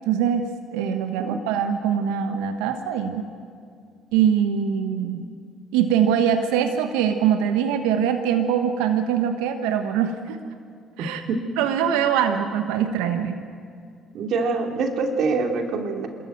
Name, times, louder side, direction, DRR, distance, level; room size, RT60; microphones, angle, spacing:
voice 1, 0.1-3.3 4.1-5.2 5.7-10.4 11.0-11.2 11.6-13.4, right 8 dB, 80° right, 7 dB, 1.1 m, -23 dB
voice 2, 14.1-16.1, right 4 dB, 65° right, 3 dB, 2.8 m, -24 dB
26.5 x 14.0 x 9.2 m, 2.2 s
hypercardioid pair, 60°, 0 cm